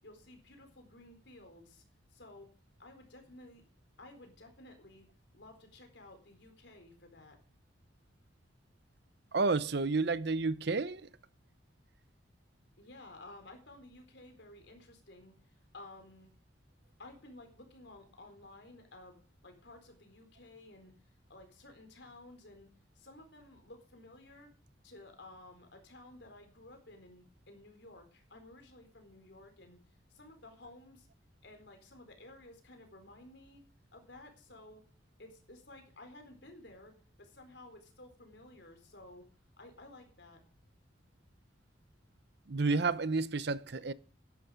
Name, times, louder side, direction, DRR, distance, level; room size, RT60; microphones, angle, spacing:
voice 1, 0.0-1.8 2.1-2.5 2.8-3.6 4.0-5.1 5.3-7.4 12.8-15.3 15.7-16.3 17.0-20.9 21.3-22.7 23.0-24.5 24.8-29.8 30.1-31.1 31.4-33.6 33.9-34.8 35.2-36.9 37.2-39.2 39.6-40.4, left 2 dB, 65° left, 4.3 m, -54 dB
voice 2, 9.3-11.1 42.5-43.9, right 3 dB, 60° right, 0.7 m, -30 dB
14.0 x 11.0 x 5.1 m
head